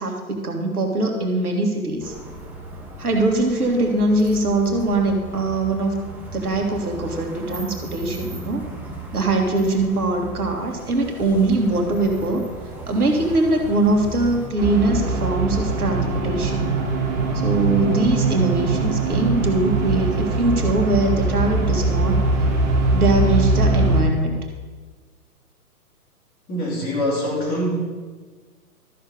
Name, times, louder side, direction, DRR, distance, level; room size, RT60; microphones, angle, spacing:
voice 1, 0.0-2.1 3.0-6.0 6.3-8.6 9.1-12.5 12.9-16.7 17.3-22.2 22.9-24.4, right 2 dB, 70° right, 2 dB, 2.0 m, -22 dB
sound 1, 2.0-14.5, right 3 dB, 5° right, 1.1 m, -36 dB
sound 2, 14.6-24.0, right 3 dB, 30° right, 2.3 m, -21 dB
voice 2, 26.5-27.8, equal, 20° left, -3 dB, 2.8 m, -24 dB
13.0 x 6.6 x 5.0 m, 1.4 s
figure-of-eight pair, 120°, 46 cm